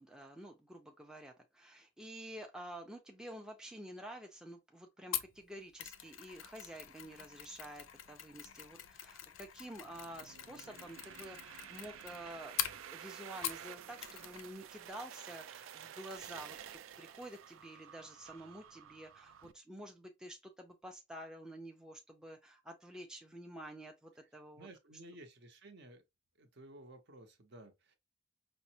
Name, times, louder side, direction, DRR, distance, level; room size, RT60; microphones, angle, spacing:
voice 1, 0.0-24.7, right 1 dB, 5° right, 0.4 m, -50 dB
Mechanisms, 5.1-13.7 14.0-14.5 14.7-14.9, left 11 dB, 85° left, 0.4 m, -44 dB
sound 1, 9.8-19.5, right 9 dB, 85° right, 0.3 m, -51 dB
voice 2, 24.6-26.0 26.4-28.0, right 1 dB, 60° right, 0.7 m, -54 dB
5.1 x 2.0 x 2.7 m
head